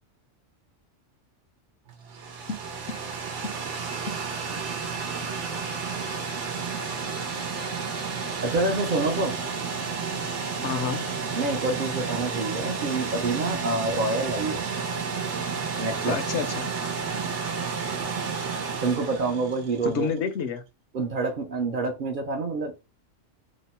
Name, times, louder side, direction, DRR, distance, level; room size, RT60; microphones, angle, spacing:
sound 1, 1.9-20.0, right 5 dB, 80° right, 1.1 m, -31 dB
voice 1, 8.4-9.4 11.3-14.6 15.8-16.1 18.8-20.1 20.9-22.7, right 3 dB, 50° right, 0.7 m, -27 dB
voice 2, 10.6-11.1 16.1-16.7 19.8-20.6, left 6 dB, 75° left, 0.9 m, -29 dB
2.9 x 2.0 x 4.1 m
omnidirectional pair, 1.2 m